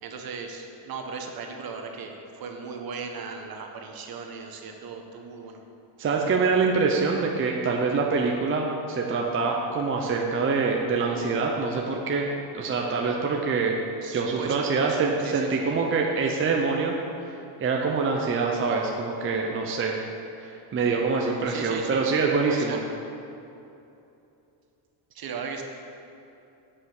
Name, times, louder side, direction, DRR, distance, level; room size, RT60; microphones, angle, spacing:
voice 1, 0.0-5.6 6.2-6.7 14.0-15.6 21.4-22.0 22.5-22.8 25.1-25.6, right 5 dB, 50° right, 3 dB, 1.2 m, -37 dB
voice 2, 6.0-13.8 14.1-17.0 17.6-20.0 20.4-22.8, right 4 dB, 30° right, 0 dB, 0.7 m, -25 dB
9.4 x 5.6 x 6.5 m, 2.8 s
cardioid pair, 140°, 45 cm